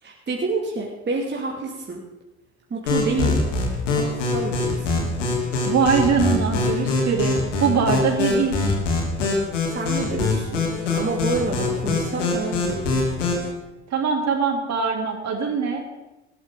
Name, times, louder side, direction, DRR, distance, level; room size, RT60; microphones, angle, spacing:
voice 1, 0.0-2.0 2.7-3.5 3.9-5.1 9.7-13.1, right 3 dB, 30° right, -2 dB, 2.8 m, -28 dB
sound 1, 2.9-13.5, left 3 dB, 85° left, 3.3 m, -24 dB
voice 2, 5.6-7.3 7.6-8.8 13.9-15.8, right 6 dB, 45° right, 1 dB, 3.7 m, -22 dB
19.5 x 13.5 x 4.1 m, 1.0 s
hypercardioid pair, 70°, 36 cm